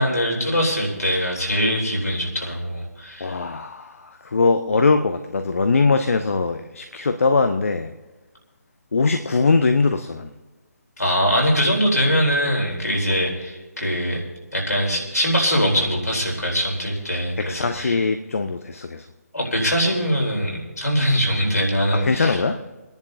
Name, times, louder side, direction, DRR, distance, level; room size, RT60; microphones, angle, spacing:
voice 1, 0.0-3.4 11.0-14.2 14.5-18.0 19.3-22.4, equal, 80° left, -1 dB, 3.8 m, -22 dB
voice 2, 3.2-7.9 8.9-10.3 17.4-19.0 22.0-22.6, left 4 dB, 55° left, 8 dB, 0.7 m, -21 dB
28.5 x 10.5 x 2.8 m, 1.2 s
figure-of-eight pair, 145°, 9 cm